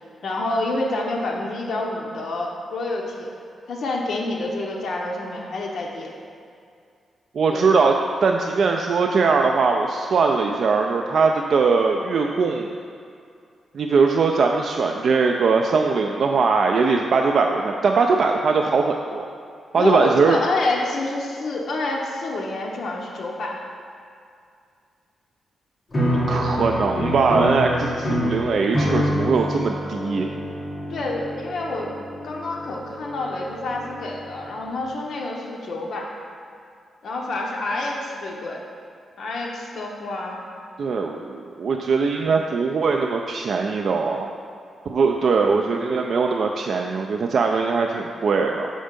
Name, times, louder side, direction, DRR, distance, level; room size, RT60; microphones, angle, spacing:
voice 1, 0.2-3.3 3.7-6.1 7.5-7.7 19.8-23.6 30.9-31.9 32.2-36.1 37.0-38.6 39.2-40.4, left 2 dB, 60° left, -2 dB, 0.7 m, -28 dB
voice 2, 7.3-7.9 8.2-12.7 13.7-19.3 19.7-20.4 26.3-30.3 40.8-44.3 44.9-48.7, right 4 dB, 55° right, 2 dB, 0.3 m, -21 dB
sound 1, 25.9-34.2, equal, 30° left, 1.2 m, -27 dB
6.3 x 4.4 x 5.1 m, 2.4 s
wide cardioid pair, 135°, 0 cm